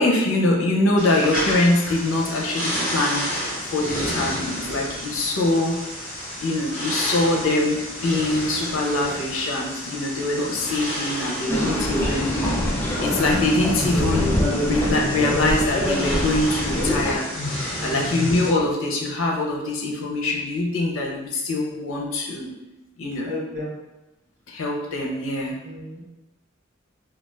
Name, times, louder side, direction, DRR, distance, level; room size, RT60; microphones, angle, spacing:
voice 1, 0.0-3.3 3.7-5.9 6.4-12.7 13.0-17.3 17.8-22.5 23.0-23.3 24.5-25.6, left 2 dB, 80° left, -1 dB, 0.6 m, -23 dB
sound 1, 1.0-18.5, equal, 40° left, 1.0 m, -31 dB
sound 2, 11.5-17.2, left 1 dB, 10° left, 0.4 m, -24 dB
voice 2, 17.7-18.1 23.2-23.7 25.6-26.0, left 1 dB, 85° right, -8 dB, 0.9 m, -33 dB
2.3 x 2.3 x 3.2 m, 0.97 s
head